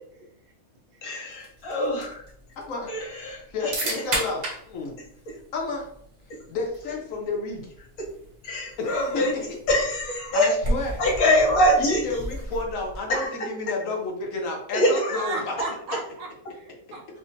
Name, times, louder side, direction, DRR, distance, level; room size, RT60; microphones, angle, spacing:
voice 1, 1.0-2.2 2.9-3.4 8.0-8.1 8.4-9.3 9.7-10.5 11.0-12.0 13.1-13.3 14.7-15.2, left 1 dB, 90° left, -2 dB, 1.4 m, -23 dB
sound 1, 1.3-13.2, right 1 dB, 60° right, 1.3 m, -36 dB
voice 2, 2.6-2.9 3.5-5.0 5.5-5.9 6.5-7.7 8.8-9.6 10.3-11.0 11.8-15.5, left 3 dB, 70° left, 1 dB, 1.1 m, -31 dB
voice 3, 15.1-17.2, right 3 dB, 75° right, 0 dB, 1.2 m, -35 dB
4.8 x 2.1 x 2.6 m, 0.68 s
omnidirectional pair, 1.5 m